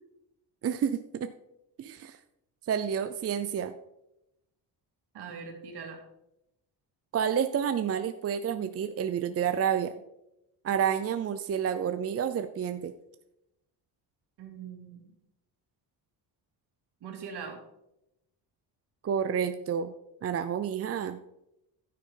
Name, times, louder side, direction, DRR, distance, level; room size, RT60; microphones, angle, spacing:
voice 1, 0.6-1.3 1.8-2.2 2.7-3.7 7.1-9.9 10.6-12.9 19.0-19.9 20.2-21.2, right 8 dB, 35° right, 9 dB, 0.5 m, -29 dB
voice 2, 5.1-6.0 14.4-15.1 17.0-17.6, right 6 dB, 70° right, 2 dB, 2.7 m, -41 dB
15.0 x 6.6 x 3.8 m, 0.84 s
cardioid pair, 120°, 41 cm